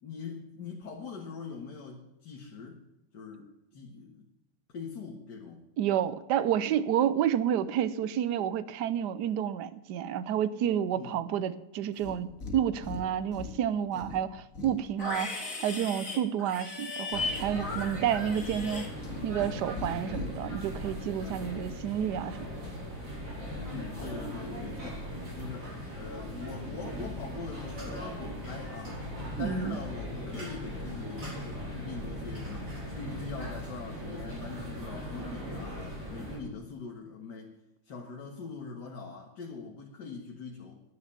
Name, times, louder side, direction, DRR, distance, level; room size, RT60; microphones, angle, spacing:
voice 1, 0.0-2.8 3.1-4.3 4.7-5.6 10.9-11.2 23.5-29.0 29.4-37.6 37.8-40.8, left 4 dB, 80° left, 0 dB, 2.2 m, -43 dB
voice 2, 5.8-12.3 12.5-18.9 19.2-22.4 29.4-29.8, right 9 dB, 80° right, 15 dB, 1.3 m, -30 dB
Livestock farm animals working animals, 11.9-12.6 12.8-13.6 13.9-19.5 19.8-20.3, left 3 dB, 50° left, 2.8 m, -37 dB
sound 1, 17.1-36.4, equal, 50° right, 5.4 m, -39 dB
11.0 x 10.5 x 6.9 m, 0.91 s
omnidirectional pair, 1.8 m